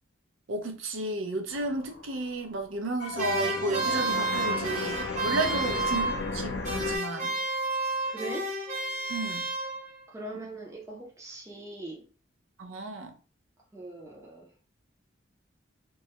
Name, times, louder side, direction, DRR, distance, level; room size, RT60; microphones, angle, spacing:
voice 1, 0.5-7.4 9.1-9.5 12.6-13.1, right 2 dB, 75° right, 0.5 m, -33 dB
sound 1, 1.5-7.0, left 3 dB, 65° left, 0.4 m, -35 dB
sound 2, 3.2-6.4 6.6-10.0, right 2 dB, 35° right, 0.8 m, -31 dB
voice 2, 8.1-8.5 10.1-12.0 13.7-14.5, right 2 dB, 15° right, 0.4 m, -41 dB
2.2 x 2.1 x 2.8 m
head